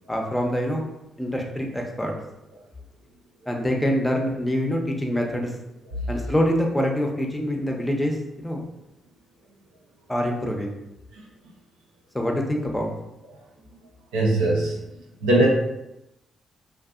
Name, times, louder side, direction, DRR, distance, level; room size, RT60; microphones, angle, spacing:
voice 1, 0.1-0.9 1.2-2.1 3.5-5.5 6.1-8.6 10.1-10.8 12.1-12.9, equal, 10° left, 1 dB, 0.6 m, -25 dB
voice 2, 14.1-14.8 15.2-15.5, right 2 dB, 85° right, -3 dB, 0.6 m, -20 dB
2.6 x 2.4 x 2.4 m, 0.90 s
hypercardioid pair, 45°, 0 cm